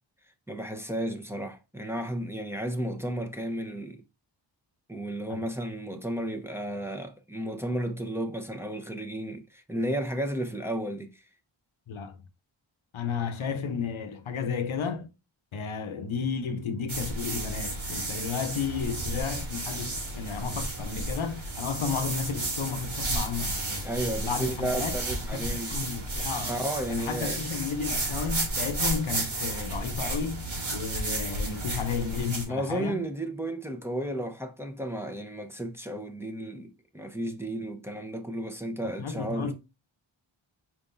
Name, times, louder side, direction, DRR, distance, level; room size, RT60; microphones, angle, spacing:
voice 1, 0.5-4.0 4.9-11.2 23.8-25.8 26.4-27.4 32.5-39.5, right 1 dB, 5° right, 0.7 m, -33 dB
voice 2, 12.9-15.1 15.5-23.9 24.2-24.9 25.3-26.6 26.9-30.5 30.7-33.0 38.8-39.5, left 6 dB, 80° left, 0.8 m, -33 dB
sound 1, 16.9-32.4, right 2 dB, 75° right, 2.1 m, -32 dB
4.9 x 3.7 x 2.5 m
wide cardioid pair, 105°, 47 cm